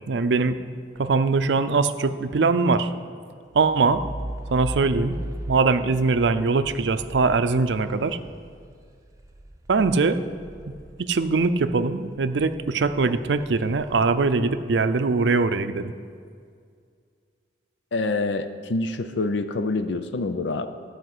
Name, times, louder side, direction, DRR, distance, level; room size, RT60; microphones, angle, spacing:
voice 1, 0.1-0.6 1.0-2.9 3.5-4.0 4.5-5.1 5.5-8.2 9.7-10.2 11.0-15.9, right 4 dB, 70° right, 11 dB, 0.5 m, -22 dB
sound 1, 3.5-11.8 12.2-14.8, right 1 dB, 20° right, 0.7 m, -39 dB
voice 2, 17.9-20.7, left 3 dB, 80° left, 10 dB, 0.5 m, -26 dB
12.5 x 5.1 x 7.7 m, 2.2 s
head